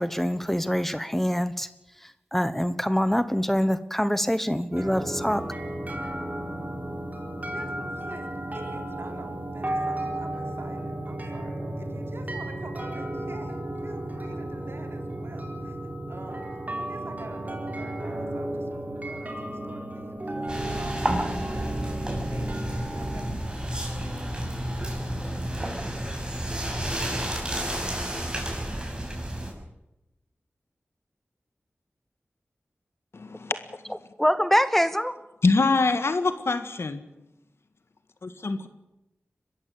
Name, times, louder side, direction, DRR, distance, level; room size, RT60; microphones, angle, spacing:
voice 1, 0.0-1.7 2.3-5.4 34.2-35.2, equal, 5° left, 13 dB, 1.1 m, -24 dB
sound 1, 4.7-23.3, right 1 dB, 35° right, 4.3 m, -34 dB
voice 2, 7.5-8.3 8.5-15.8 16.1-16.5 16.8-22.0 22.3-23.5, right 2 dB, 60° right, 5 dB, 3.7 m, -46 dB
sound 2, 20.5-29.5, right 1 dB, 20° right, 6.8 m, -31 dB
voice 3, 33.1-33.5 35.4-37.0 38.2-38.7, left 3 dB, 70° left, 10 dB, 1.8 m, -24 dB
22.5 x 14.0 x 8.7 m, 0.93 s
cardioid pair, 50°, 4 cm